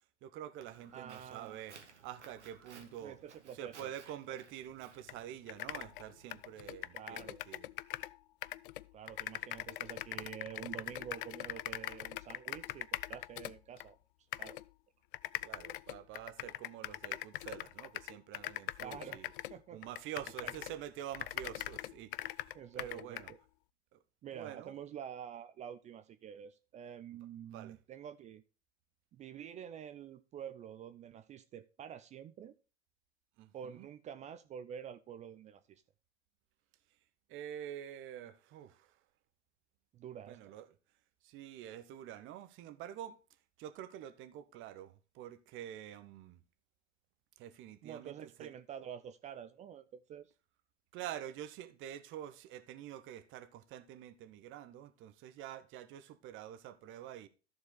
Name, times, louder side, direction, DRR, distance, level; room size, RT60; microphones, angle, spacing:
voice 1, 0.2-3.2 3.6-7.7 15.4-19.3 19.7-23.3 23.9-24.0 24.3-24.8 27.5-27.8 33.4-33.9 37.3-38.9 40.3-40.7 41.2-43.2 43.6-46.4 47.4-48.1 48.4-48.5 50.9-57.3, right 11 dB, 35° right, 1.0 m, -47 dB
Walk footsteps, 0.6-6.7, right 5 dB, 80° right, 1.6 m, -59 dB
voice 2, 0.9-1.6 3.0-3.9 6.9-7.4 8.9-14.0 14.4-14.6 18.8-19.2 19.5-19.9 20.4-20.5 22.5-23.4 24.2-28.4 29.1-32.5 33.5-35.8 39.9-40.4 47.8-50.3, right 9 dB, 20° right, 0.5 m, -48 dB
sound 1, 5.1-5.2 5.5-8.2 8.4-13.9 14.3-14.6 15.1-20.8 21.1-23.3, left 16 dB, 50° left, 0.4 m, -42 dB
13.5 x 4.8 x 3.9 m
figure-of-eight pair, 95°, 34 cm